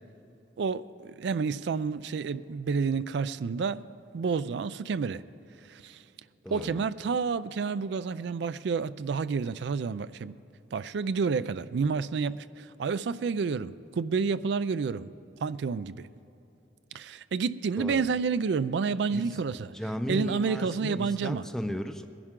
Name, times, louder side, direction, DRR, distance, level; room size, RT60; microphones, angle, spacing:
voice 1, 0.6-3.9 4.1-5.2 5.7-6.0 6.5-10.4 10.7-15.1 15.4-16.1 16.9-19.7 20.1-21.4, right 5 dB, 65° right, 0.3 m, -29 dB
voice 2, 6.4-6.8 17.8-18.0 19.1-19.3 19.7-22.1, equal, ahead, 0.5 m, -35 dB
20.0 x 11.0 x 3.7 m
head